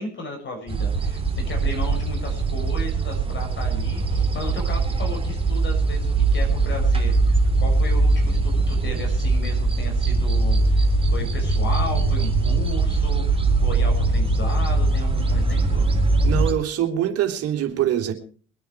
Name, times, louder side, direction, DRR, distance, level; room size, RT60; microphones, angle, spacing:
voice 1, 0.0-10.8 11.1-15.9, left 2 dB, 35° left, 2 dB, 6.7 m, -35 dB
sound 1, 0.7-16.5, right 3 dB, 15° right, 3.2 m, -21 dB
voice 2, 16.2-18.1, right 11 dB, 45° right, 4 dB, 3.3 m, -24 dB
23.0 x 9.1 x 4.8 m, 0.43 s
hypercardioid pair, 65°, 33 cm